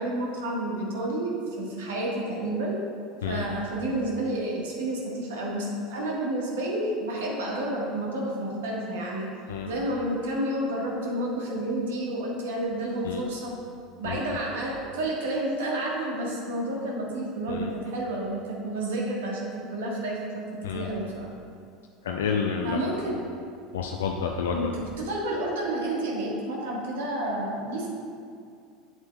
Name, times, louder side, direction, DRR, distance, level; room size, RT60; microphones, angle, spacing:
voice 1, 0.0-2.8 3.3-9.3 9.7-13.5 14.0-20.4 20.7-21.3 22.6-23.2 24.5-27.9, right 1 dB, 70° right, -2 dB, 1.5 m, -30 dB
voice 2, 22.0-22.9 23.7-24.7, left 6 dB, 75° left, 1 dB, 0.4 m, -29 dB
8.2 x 7.9 x 2.4 m, 2.3 s
hypercardioid pair, 80°, 0 cm